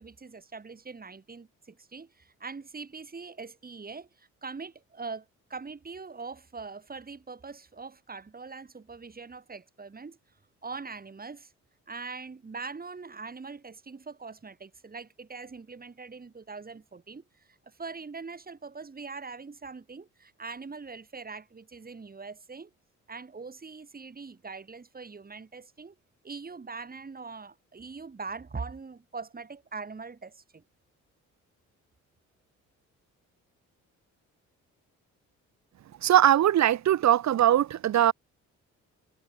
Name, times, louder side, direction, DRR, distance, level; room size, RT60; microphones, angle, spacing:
voice 1, 0.0-10.2 10.6-11.5 11.9-22.7 23.1-25.9 26.2-30.6, right 4 dB, 30° right, 7.7 m, -42 dB
voice 2, 36.0-38.1, right 11 dB, 65° right, 1.7 m, -21 dB
cardioid pair, 90°, 30 cm